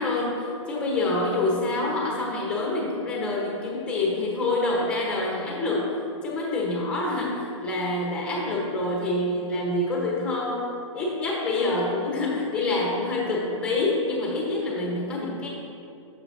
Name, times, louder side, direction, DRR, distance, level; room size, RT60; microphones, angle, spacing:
voice 1, 0.0-5.9 6.2-10.7 10.9-15.5, left 2 dB, 5° left, -3 dB, 0.8 m, -26 dB
8.7 x 6.4 x 2.6 m, 2.5 s
hypercardioid pair, 170°, 17 cm